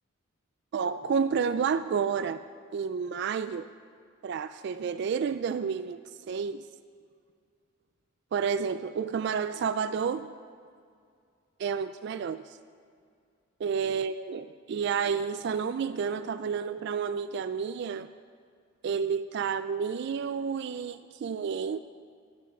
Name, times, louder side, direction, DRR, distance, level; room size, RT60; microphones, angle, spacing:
voice 1, 0.7-2.4 2.7-3.7 4.2-6.0 6.3-6.7 8.3-10.3 11.6-12.6 13.6-18.1 18.8-21.8, right 6 dB, 55° right, 12 dB, 0.3 m, -30 dB
9.7 x 9.4 x 7.1 m, 2.2 s
head